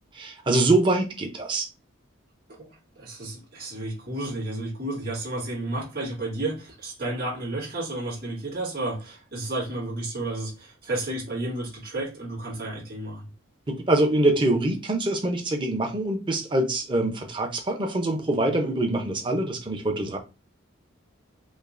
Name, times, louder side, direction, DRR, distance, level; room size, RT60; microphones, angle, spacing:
voice 1, 0.1-1.7 13.7-20.2, right 2 dB, 25° right, 0.5 m, -24 dB
voice 2, 2.5-13.3, right 2 dB, 45° right, 1.8 m, -32 dB
5.1 x 2.0 x 2.5 m
head